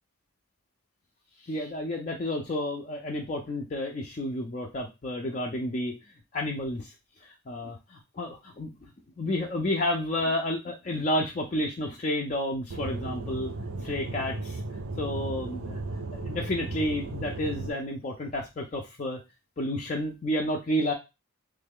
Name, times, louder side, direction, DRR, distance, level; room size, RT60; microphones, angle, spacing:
voice 1, 1.4-5.9 6.3-6.9 7.2-8.9 9.2-13.5 13.8-14.6 15.0-15.8 16.1-19.2 19.6-20.9, left 1 dB, 35° left, 0 dB, 0.4 m, -31 dB
Aircraft / Engine, 12.7-17.7, right 2 dB, 70° right, 0.6 m, -35 dB
3.2 x 2.2 x 3.5 m, 0.25 s
head